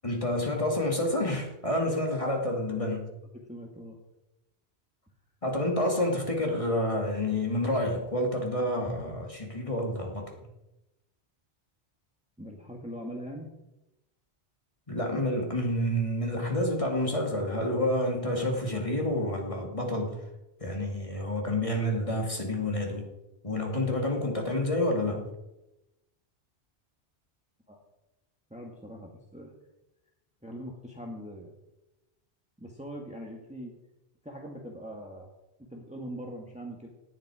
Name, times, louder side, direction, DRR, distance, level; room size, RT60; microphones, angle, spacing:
voice 1, 0.0-3.1 5.4-10.3 14.9-20.2 20.6-23.1 23.4-25.3, left 1 dB, 30° left, 1 dB, 2.6 m, -29 dB
voice 2, 3.5-4.0 12.4-13.5 27.7-27.8 28.5-29.5 30.4-31.5 32.6-33.7 34.2-35.3 35.7-36.9, equal, 5° right, 0 dB, 1.8 m, -41 dB
18.0 x 10.5 x 5.0 m, 0.95 s
omnidirectional pair, 1.1 m